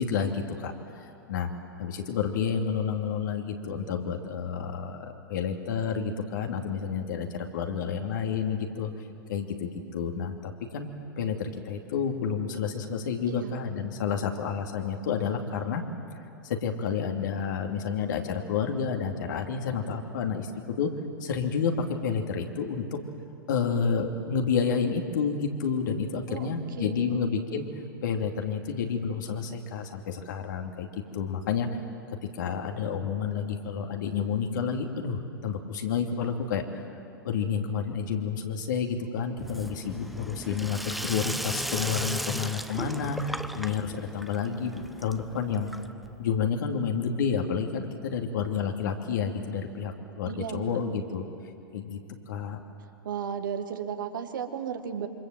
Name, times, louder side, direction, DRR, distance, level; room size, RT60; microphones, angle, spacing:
voice 1, 0.0-1.5 1.8-8.9 9.3-10.9 11.2-15.8 16.4-20.5 20.8-20.9 21.2-23.0 23.5-27.6 28.0-30.9 31.1-31.7 32.3-36.8 37.2-45.7 46.2-51.3 51.7-52.0 52.3-52.6, left 6 dB, 60° left, 3 dB, 2.7 m, -30 dB
voice 2, 26.3-27.3 50.3-50.8 53.0-55.1, right 7 dB, 65° right, 7 dB, 2.0 m, -34 dB
Sink (filling or washing), 39.4-46.2, equal, ahead, 0.9 m, -36 dB
27.0 x 25.5 x 7.7 m, 2.6 s
figure-of-eight pair, 100°, 12 cm